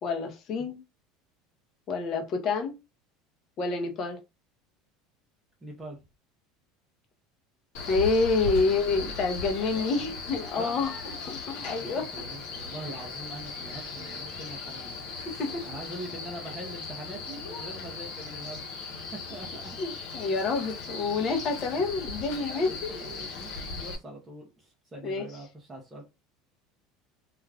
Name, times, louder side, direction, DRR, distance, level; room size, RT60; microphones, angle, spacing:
voice 1, 0.0-0.8 1.9-2.7 3.6-4.2 7.9-10.9 11.3-12.1 15.4-15.6 19.8-22.9 25.0-25.3, left 4 dB, 35° left, 0.7 m, -28 dB
voice 2, 5.6-6.0 8.5-8.6 9.7-9.9 10.6-10.8 11.8-15.0 15.6-18.7 19.1-19.8 21.6-22.0 22.3-26.0, right 1 dB, 10° right, 0.6 m, -43 dB
Male speech man speaking, 7.7-23.9, left 4 dB, 65° left, 0.8 m, -38 dB
2.4 x 2.3 x 3.2 m
cardioid pair, 160°, 0 cm